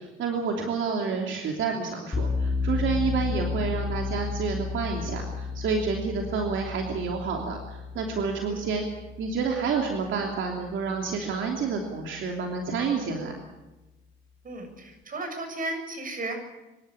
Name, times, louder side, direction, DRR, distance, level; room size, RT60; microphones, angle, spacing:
voice 1, 0.0-8.9 9.2-13.3, right 5 dB, 75° right, 1 dB, 3.0 m, -29 dB
sound 1, 2.1-11.0, left 5 dB, 25° left, 4.0 m, -33 dB
voice 2, 14.4-16.4, right 2 dB, 45° right, 5 dB, 6.9 m, -34 dB
25.5 x 12.0 x 9.7 m, 1.1 s
cardioid pair, 90°, 20 cm